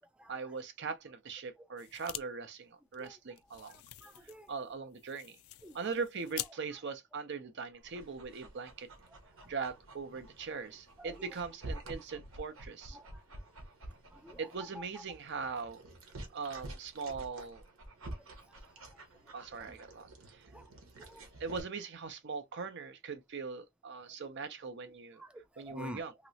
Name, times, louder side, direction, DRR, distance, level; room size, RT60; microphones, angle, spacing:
voice 1, 0.3-3.8 4.5-5.4 5.7-8.9 9.4-13.0 14.4-15.8 16.3-17.6 19.3-20.5 21.4-25.2 25.6-26.1, right 5 dB, 55° right, 0.6 m, -40 dB
sound 1, 1.8-2.2 2.5-2.6 2.9-6.5, left 15 dB, 75° left, 0.3 m, -45 dB
voice 2, 4.0-4.5 5.6-5.8 11.0-11.1 11.9-12.0 12.9-13.4 14.1-14.4 14.9-15.0 18.1-18.2 19.2-19.3 20.5-20.7 21.0-21.2 25.2-26.0, equal, 5° right, 0.4 m, -49 dB
Dog, 7.8-21.6, right 1 dB, 70° right, 1.1 m, -49 dB
3.0 x 2.9 x 2.7 m
head